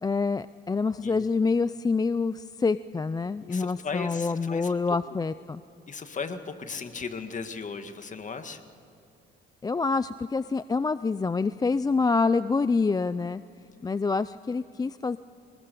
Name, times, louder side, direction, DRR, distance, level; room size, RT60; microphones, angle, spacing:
voice 1, 0.0-5.6 9.6-13.4 13.8-15.2, left 4 dB, 20° left, 15 dB, 0.4 m, -26 dB
voice 2, 3.4-5.0 5.9-8.6, left 5 dB, 40° left, 8 dB, 1.8 m, -36 dB
23.5 x 20.0 x 6.9 m, 2.7 s
cardioid pair, 90°, 20 cm